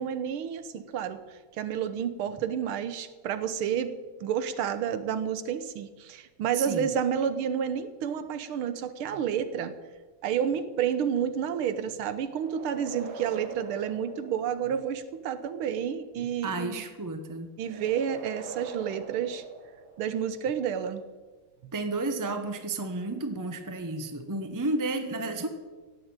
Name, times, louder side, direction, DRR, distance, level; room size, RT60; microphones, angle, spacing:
voice 1, 0.0-3.9 4.2-9.7 10.2-16.8 17.6-19.4 20.0-21.0 21.6-21.7, right 8 dB, 80° right, 11 dB, 1.8 m, -30 dB
voice 2, 6.5-6.9 16.4-17.5 21.7-25.5, right 2 dB, 20° right, 7 dB, 0.4 m, -32 dB
sound 1, 12.3-15.0 17.6-20.4, right 4 dB, 65° right, 2.1 m, -43 dB
17.0 x 7.7 x 8.8 m, 1.4 s
omnidirectional pair, 2.3 m